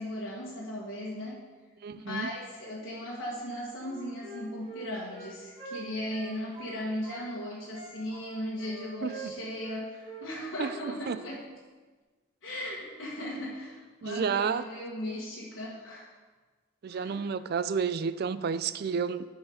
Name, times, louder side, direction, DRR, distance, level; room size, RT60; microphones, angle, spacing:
voice 1, 0.0-1.4 1.9-11.4 12.4-16.1 16.9-17.2, left 1 dB, 65° left, -7 dB, 1.7 m, -37 dB
voice 2, 1.8-2.3 9.0-9.3 10.6-11.2 14.0-14.6 16.8-19.3, right 6 dB, 50° right, 14 dB, 0.3 m, -31 dB
Wind instrument woodwind instrument, 3.8-7.3 7.7-9.8 10.0-10.2 10.5-10.8 11.1-11.3, right 4 dB, 25° right, 1.9 m, -45 dB
11.0 x 4.7 x 5.0 m, 1.3 s
head